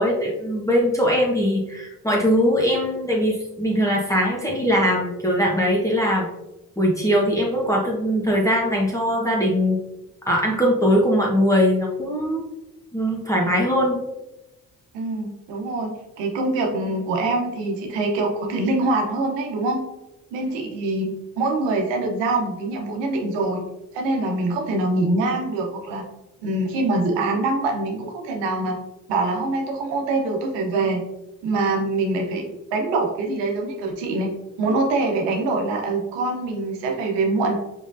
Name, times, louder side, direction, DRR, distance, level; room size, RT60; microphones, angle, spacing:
voice 1, 0.0-6.3 6.8-9.8 10.3-12.5 12.9-14.0, equal, 5° left, -3 dB, 1.2 m, -21 dB
voice 2, 14.9-15.9 16.2-19.8 20.3-23.6 23.9-26.0 26.4-28.8 29.1-31.0 31.4-32.5 32.7-34.3 34.6-37.6, right 2 dB, 80° right, 1 dB, 1.0 m, -24 dB
5.0 x 3.7 x 2.6 m, 0.95 s
hypercardioid pair, 45°, 42 cm